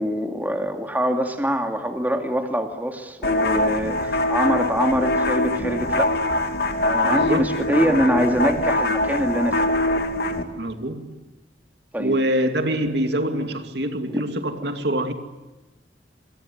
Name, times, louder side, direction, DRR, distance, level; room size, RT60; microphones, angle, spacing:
voice 1, 0.0-6.1 6.8-9.6 11.9-12.2 14.1-14.2, equal, 10° right, 2.4 m, -24 dB
sound 1, 3.2-10.4, left 1 dB, 60° left, 2.8 m, -23 dB
voice 2, 7.0-7.5 10.6-11.2 12.0-15.1, right 1 dB, 65° right, 2.6 m, -25 dB
28.0 x 23.0 x 9.4 m
head